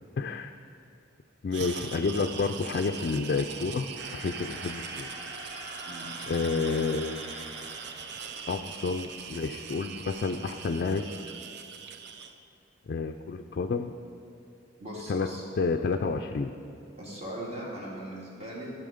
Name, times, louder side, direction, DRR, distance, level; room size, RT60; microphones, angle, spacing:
voice 1, 0.2-0.5 1.4-3.9 4.1-5.1 6.3-7.5 8.5-11.0 12.9-13.9 15.1-15.3 15.6-16.5, left 4 dB, 50° left, 5 dB, 0.4 m, -30 dB
sound 1, 1.5-12.3, right 6 dB, 60° right, 0.6 m, -41 dB
sound 2, 4.0-8.8, right 1 dB, 90° right, 2.1 m, -44 dB
voice 2, 14.8-15.4 17.0-18.7, right 1 dB, 35° right, -5 dB, 2.3 m, -39 dB
13.0 x 6.2 x 5.1 m, 2.6 s
head